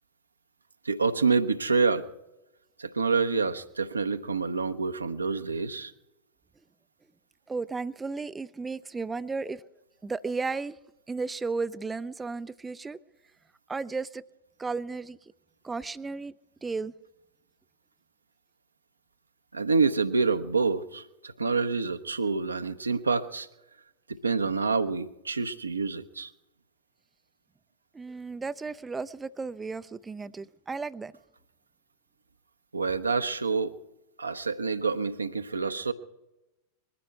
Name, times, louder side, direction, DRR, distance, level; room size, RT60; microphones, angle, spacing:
voice 1, 0.8-2.1 2.8-5.9 19.5-23.5 24.2-26.3 32.7-33.8 34.2-35.9, right 4 dB, 80° right, 9 dB, 0.8 m, -27 dB
voice 2, 7.5-9.6 10.0-10.8 11.1-13.0 13.7-14.2 14.6-15.3 15.6-16.3 16.6-16.9 27.9-31.1, right 4 dB, 15° right, 13 dB, 0.4 m, -34 dB
21.0 x 14.5 x 4.6 m, 0.93 s
figure-of-eight pair, 90°, 0 cm